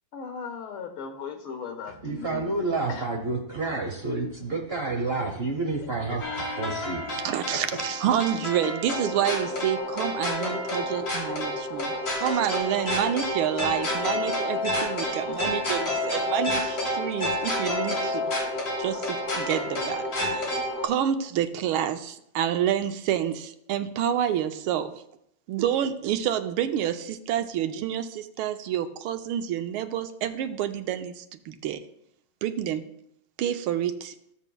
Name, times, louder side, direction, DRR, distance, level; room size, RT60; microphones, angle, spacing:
voice 1, 0.1-2.6 2.9-3.1 6.3-6.4 8.6-8.8, left 6 dB, 85° left, 5 dB, 2.0 m, -37 dB
voice 2, 2.0-7.2 7.5-7.6, right 3 dB, 45° right, 2 dB, 0.8 m, -29 dB
sound 1, 6.2-20.9, left 1 dB, 45° left, 2.7 m, -29 dB
voice 3, 7.2-18.3 18.8-24.9 25.5-31.8 32.4-32.8 33.4-34.1, right 10 dB, 90° right, 8 dB, 1.6 m, -28 dB
15.0 x 7.2 x 2.3 m, 0.75 s
omnidirectional pair, 2.3 m